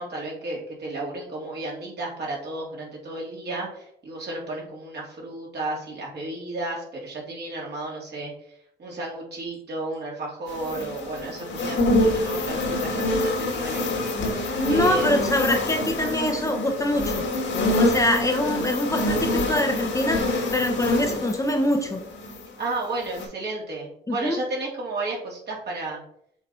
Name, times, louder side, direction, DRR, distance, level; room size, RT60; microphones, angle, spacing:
voice 1, 0.0-8.3 8.8-14.1 14.7-15.2 22.6-26.0, right 2 dB, 55° right, -3 dB, 2.9 m, -33 dB
sound 1, 10.5-22.6 23.0-23.3, left 1 dB, 75° left, 2.1 m, -26 dB
voice 2, 14.6-17.2 17.8-22.0 24.1-24.4, left 1 dB, 15° left, 3 dB, 0.9 m, -24 dB
6.9 x 4.0 x 4.4 m, 0.70 s
cardioid pair, 90°, 20 cm